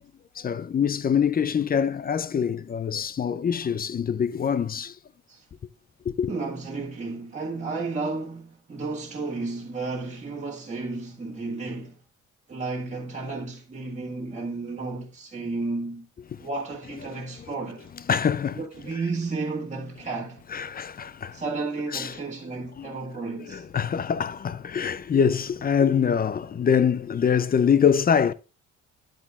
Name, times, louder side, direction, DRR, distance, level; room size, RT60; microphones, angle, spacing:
voice 1, 0.4-5.0 6.1-6.3 18.1-18.6 20.5-21.4 21.9-22.2 22.8-22.9 23.4-28.3, left 7 dB, 30° left, 0.5 m, -24 dB
voice 2, 6.3-11.9 12.5-16.1 16.4-17.9 18.5-20.4 21.3-23.6, right 3 dB, 25° right, 1.7 m, -32 dB
9.1 x 8.3 x 2.4 m
cardioid pair, 90°, 30 cm